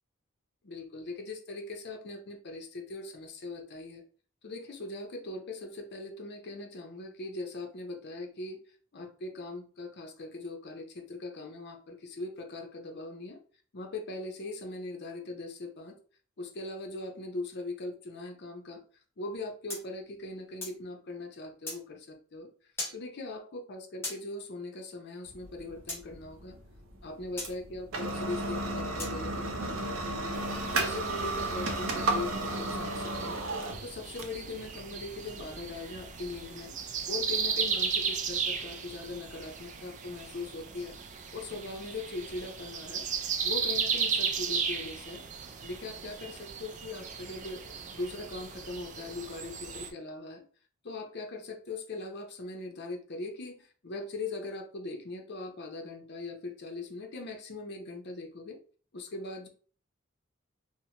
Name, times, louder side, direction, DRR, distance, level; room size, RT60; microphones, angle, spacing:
voice 1, 0.6-4.0 4.4-8.6 8.9-13.4 13.7-16.0 16.4-18.8 19.2-22.5 22.9-26.6 27.0-30.4 30.7-33.4 33.8-36.8 37.1-41.0 41.3-43.1 43.4-45.2 45.6-47.6 47.9-50.4 50.8-58.6 58.9-59.5, left 2 dB, 55° left, 2 dB, 0.6 m, -40 dB
sound 1, 19.7-20.8 21.7-21.8 22.8-23.0 24.0-24.2 25.9-26.0 27.4-27.5 29.0-29.2, left 2 dB, 10° left, 0.8 m, -38 dB
sound 2, 25.3-36.4, right 2 dB, 80° right, 0.6 m, -34 dB
sound 3, 30.3-49.9, right 6 dB, 35° right, 0.3 m, -36 dB
2.8 x 2.1 x 2.8 m, 0.42 s
head